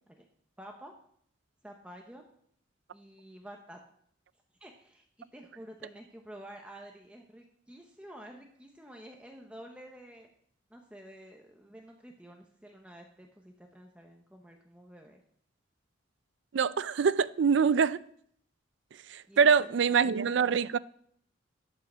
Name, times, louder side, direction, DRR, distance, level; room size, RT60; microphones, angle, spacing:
voice 1, 0.6-0.9 1.6-2.2 2.9-3.8 4.6-10.3 10.7-15.2 19.3-20.6, right 1 dB, 5° right, 0.9 m, -50 dB
voice 2, 16.5-18.0 19.1-20.8, right 6 dB, 65° right, 0.4 m, -24 dB
12.5 x 5.6 x 6.1 m
head